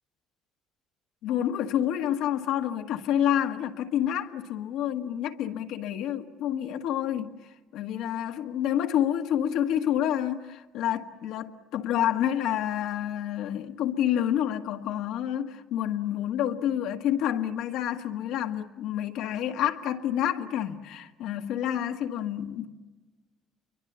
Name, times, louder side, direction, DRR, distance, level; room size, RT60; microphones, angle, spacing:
voice 1, 1.2-7.3 7.7-22.7, left 10 dB, 75° left, 1.6 m, -28 dB
29.5 x 24.0 x 7.0 m
cardioid pair, 175°, 0 cm